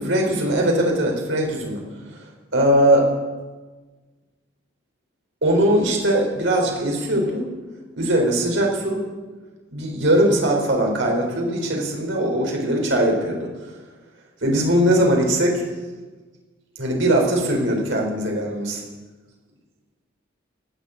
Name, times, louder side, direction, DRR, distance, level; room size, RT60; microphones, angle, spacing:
voice 1, 0.0-1.8 2.5-3.1 5.4-7.5 7.9-9.0 9.7-13.7 14.4-15.6 16.8-18.8, right 1 dB, 70° right, 0 dB, 4.2 m, -20 dB
17.0 x 8.0 x 8.9 m, 1.3 s
head